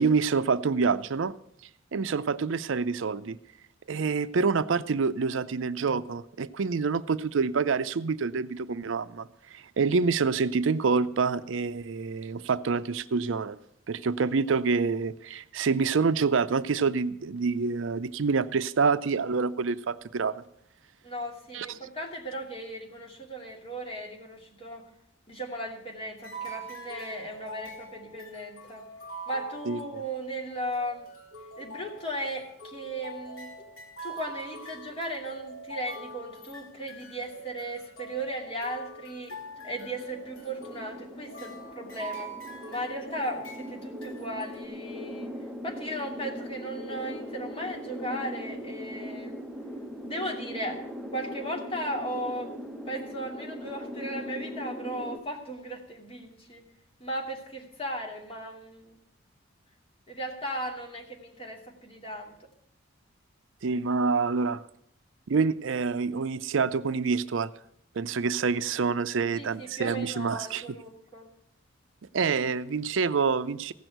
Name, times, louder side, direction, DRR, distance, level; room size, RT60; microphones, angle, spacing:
voice 1, 0.0-1.3 1.9-3.4 3.9-13.6 13.9-20.4 21.5-21.8 29.7-30.0 63.6-64.6 65.3-67.5 68.0-70.8 72.1-73.7, right 5 dB, 70° right, 0.5 m, -27 dB
voice 2, 21.0-24.8 25.3-28.8 29.3-31.1 31.6-33.5 34.0-39.4 39.6-42.3 42.7-45.3 45.6-49.4 50.0-50.8 51.1-52.5 52.9-56.6 57.0-59.0 60.1-62.3 69.3-71.3, right 1 dB, 30° left, 2.7 m, -36 dB
sound 1, 26.2-30.3 30.7-44.6, right 1 dB, 85° left, 2.4 m, -44 dB
sound 2, 39.2-55.2, equal, ahead, 1.0 m, -40 dB
15.5 x 6.2 x 9.1 m
head